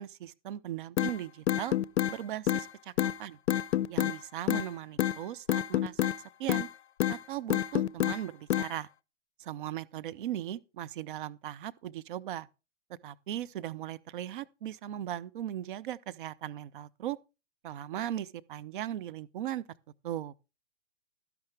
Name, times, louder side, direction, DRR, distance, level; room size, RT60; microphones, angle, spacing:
voice 1, 0.0-1.7 2.1-2.9 3.2-3.4 3.9-6.0 6.4-6.7 7.1-8.9 9.4-12.5 13.0-17.2 17.6-19.6 20.0-20.3, right 12 dB, 45° right, 0.7 m, -38 dB
sound 1, 1.0-1.1 1.5-2.1 2.5-2.6 3.0-3.1 3.5-4.1 4.5-4.7 5.0-5.1 5.5-6.2 6.5-6.7 7.0-7.2 7.5-8.2 8.5-8.7, left 12 dB, 65° left, 0.7 m, -27 dB
12.0 x 10.5 x 3.4 m
hypercardioid pair, 130°, 36 cm